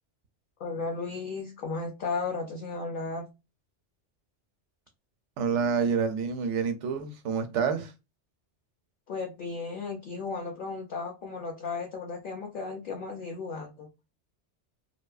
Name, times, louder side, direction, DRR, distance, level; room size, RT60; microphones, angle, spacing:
voice 1, 0.6-3.3 9.1-13.9, left 4 dB, 60° left, 0.6 m, -35 dB
voice 2, 5.4-7.9, right 6 dB, 85° right, 0.9 m, -28 dB
2.7 x 2.2 x 2.3 m
omnidirectional pair, 1.2 m